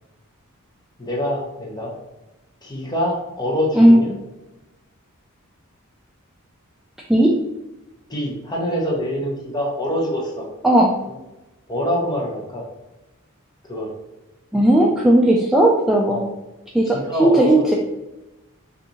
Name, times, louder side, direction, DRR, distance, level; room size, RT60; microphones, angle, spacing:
voice 1, 1.0-1.9 2.6-4.2 8.1-10.5 11.1-11.2 11.7-12.6 13.7-13.9 16.1-16.3 16.9-17.8, equal, 20° left, -1 dB, 0.8 m, -25 dB
voice 2, 14.5-16.2 16.7-17.8, right 1 dB, ahead, -3 dB, 0.4 m, -15 dB
6.2 x 2.6 x 2.8 m, 0.99 s
head